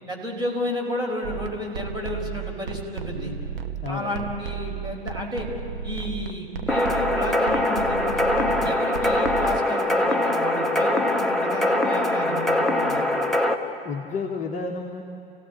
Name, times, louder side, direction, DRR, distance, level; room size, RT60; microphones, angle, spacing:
voice 1, 0.1-3.3 3.9-5.5 5.8-13.1, left 1 dB, 15° right, 1 dB, 4.5 m, -31 dB
sound 1, 1.2-9.6, right 8 dB, 65° right, 1.1 m, -34 dB
voice 2, 3.8-4.2 13.8-15.0, left 4 dB, 25° left, 0 dB, 1.5 m, -31 dB
sound 2, 6.7-13.5, left 1 dB, ahead, 1.2 m, -23 dB
28.5 x 16.5 x 8.9 m, 2.6 s
figure-of-eight pair, 95°, 30 cm